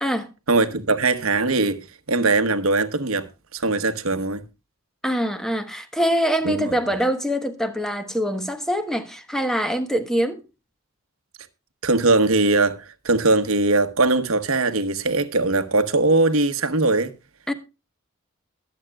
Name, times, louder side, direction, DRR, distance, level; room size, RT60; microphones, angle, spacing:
voice 1, 0.5-4.4 6.4-6.7 11.8-17.1, right 3 dB, 80° right, 1.2 m, -21 dB
voice 2, 5.0-10.4 17.5-17.6, equal, 5° left, 1.2 m, -24 dB
22.5 x 8.0 x 2.3 m
head